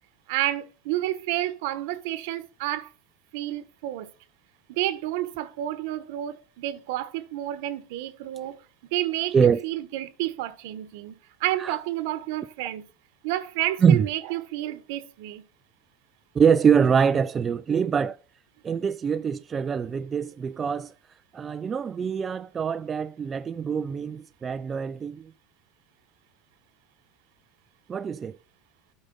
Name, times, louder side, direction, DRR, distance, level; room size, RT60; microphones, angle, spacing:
voice 1, 0.3-2.9 3.3-4.1 4.7-8.6 8.9-12.8 13.2-15.4, right 14 dB, 70° right, 1.1 m, -30 dB
voice 2, 16.3-18.2 18.6-20.9 21.3-25.3 27.9-28.4, right 7 dB, 20° right, 0.3 m, -24 dB
9.0 x 5.2 x 5.3 m
supercardioid pair, 155°, 0 cm